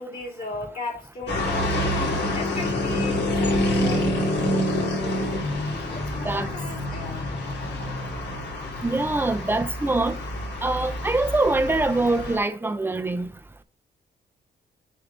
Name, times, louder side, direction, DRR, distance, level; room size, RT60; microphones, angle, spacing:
voice 1, 0.0-5.3 5.9-7.3, left 3 dB, 50° left, 3.1 m, -37 dB
sound 1, 1.3-12.4, left 1 dB, 70° left, 2.5 m, -27 dB
voice 2, 8.8-10.2 10.6-13.3, right 2 dB, 10° right, 0.6 m, -24 dB
6.8 x 2.8 x 5.8 m
cardioid pair, 95°, 18 cm